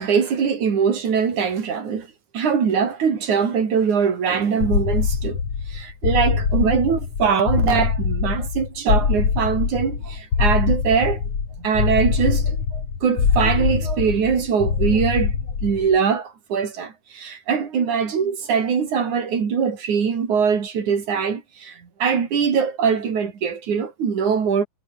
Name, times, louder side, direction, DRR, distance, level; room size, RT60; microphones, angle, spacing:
voice 1, 0.0-2.1 2.3-5.4 5.7-11.2 11.6-24.6, right 6 dB, 65° right, 4.6 m, -22 dB
sound 1, 4.6-16.0, left 6 dB, 45° left, 3.8 m, -23 dB
omnidirectional pair, 3.7 m